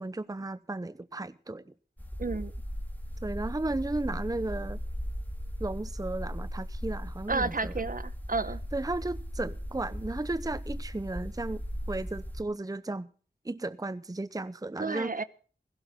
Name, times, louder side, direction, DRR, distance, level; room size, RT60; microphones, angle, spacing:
voice 1, 0.0-1.7 3.2-4.8 5.6-7.7 8.7-11.6 11.9-13.1 13.4-15.2, right 2 dB, 20° right, 0.7 m, -34 dB
sound 1, 2.0-12.4, equal, 10° left, 2.5 m, -37 dB
voice 2, 2.2-2.5 7.3-8.6 14.8-15.2, right 3 dB, 50° right, 1.0 m, -31 dB
16.5 x 16.0 x 3.7 m
wide cardioid pair, 65°, 18 cm